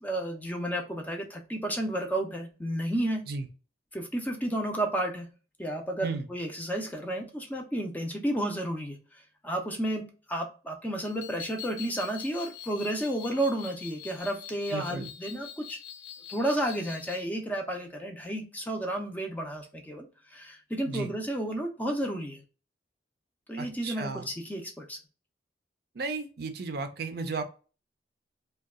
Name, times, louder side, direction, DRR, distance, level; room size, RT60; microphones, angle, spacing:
voice 1, 0.0-3.2 3.9-5.3 5.6-9.0 9.4-15.8 16.3-22.4 23.5-25.0, right 1 dB, 10° left, 3 dB, 0.5 m, -32 dB
sound 1, 11.0-17.2, left 10 dB, 75° left, 0.6 m, -45 dB
voice 2, 14.7-15.1 20.8-21.1 23.6-24.3 26.0-27.4, right 4 dB, 55° right, 7 dB, 0.5 m, -34 dB
2.7 x 2.3 x 3.5 m, 0.36 s
head